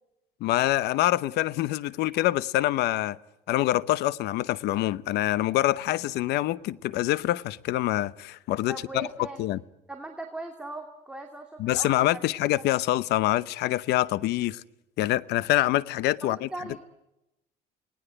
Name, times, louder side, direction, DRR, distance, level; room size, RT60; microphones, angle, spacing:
voice 1, 0.4-3.2 3.5-9.1 9.4-9.6 11.6-14.6 15.0-16.5, left 15 dB, 80° left, 0.8 m, -25 dB
voice 2, 8.7-9.5 9.9-12.2 12.6-12.7 16.2-16.8, right 2 dB, 5° right, 2.5 m, -39 dB
29.0 x 19.0 x 7.9 m
cardioid pair, 110°, 17 cm